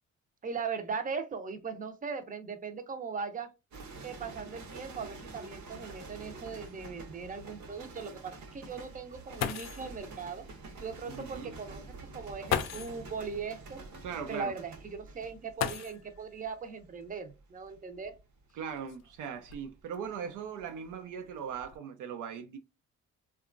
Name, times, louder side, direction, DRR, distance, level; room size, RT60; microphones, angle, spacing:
voice 1, 0.4-3.5 4.0-10.4 10.8-11.8 12.1-13.8 14.3-18.1, right 5 dB, 25° right, 0.5 m, -39 dB
sound 1, 3.7-20.9 21.2-21.6, right 3 dB, 65° right, 0.9 m, -48 dB
sound 2, 9.1-9.2 9.4-10.0 11.2-11.3 12.5-13.1 15.5-16.3 17.7-17.8 18.5-20.0 20.6-21.0 21.4-21.8, left 9 dB, 60° left, 0.5 m, -36 dB
voice 2, 11.1-11.6 14.0-14.5 18.5-22.6, right 7 dB, 90° right, 0.5 m, -39 dB
2.8 x 2.3 x 2.4 m
cardioid pair, 90°, 30 cm